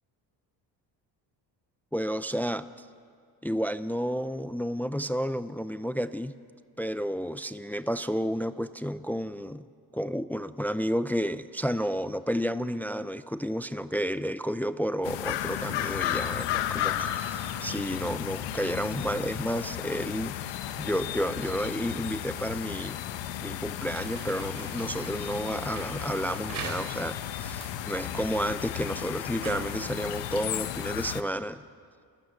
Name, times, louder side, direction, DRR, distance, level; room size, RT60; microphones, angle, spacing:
voice 1, 1.9-2.7 3.4-6.4 6.8-9.7 9.9-23.0 23.4-31.6, equal, 5° left, 13 dB, 0.5 m, -31 dB
sound 1, 15.0-31.2, left 12 dB, 80° left, 1.2 m, -34 dB
sound 2, 23.8-31.0, right 5 dB, 50° right, 3.8 m, -44 dB
28.5 x 17.0 x 7.0 m, 2.2 s
cardioid pair, 95°, 42 cm